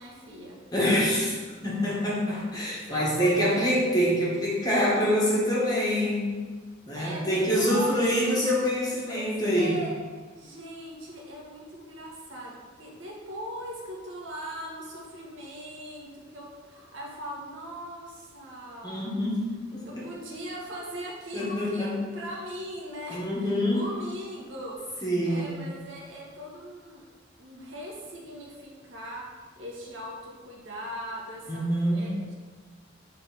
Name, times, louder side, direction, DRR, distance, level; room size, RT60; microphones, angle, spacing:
voice 1, 0.0-0.6 2.9-3.8 6.9-8.4 9.1-9.9 10.4-19.2 19.8-27.0 27.4-29.3 29.6-31.6 31.9-32.3, equal, 85° right, -3 dB, 1.6 m, -40 dB
voice 2, 0.7-6.4 6.9-9.8 18.8-20.0 21.3-22.0 23.1-23.9 25.0-25.5 31.5-32.2, equal, 20° left, -5 dB, 1.5 m, -26 dB
7.3 x 3.8 x 4.9 m, 1.5 s
head